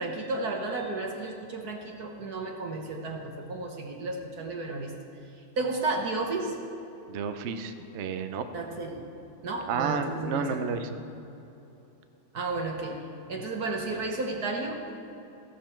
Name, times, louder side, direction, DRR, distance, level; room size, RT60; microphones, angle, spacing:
voice 1, 0.0-4.9 5.6-6.6 8.5-9.1 9.4-10.6 12.3-14.9, right 3 dB, 55° right, 1 dB, 1.5 m, -33 dB
voice 2, 7.1-8.5 9.7-11.0, right 6 dB, 75° right, 8 dB, 0.6 m, -31 dB
14.0 x 12.0 x 4.5 m, 2.9 s
omnidirectional pair, 2.1 m